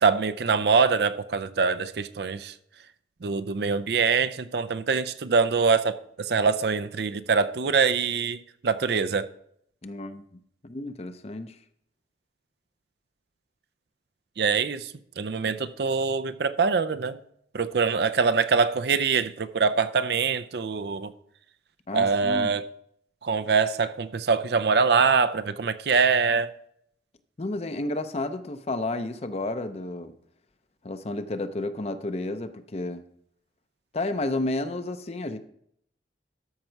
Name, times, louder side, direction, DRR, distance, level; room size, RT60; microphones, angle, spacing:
voice 1, 0.0-2.5 3.2-8.4 8.6-9.3 14.4-17.2 17.5-21.1 21.9-22.6 23.2-26.5, right 5 dB, 65° right, 0.5 m, -24 dB
voice 2, 9.8-10.3 10.6-11.6 21.9-22.5 27.4-30.1 30.8-33.0 33.9-35.4, left 2 dB, 35° left, 0.6 m, -31 dB
13.0 x 5.9 x 4.5 m
head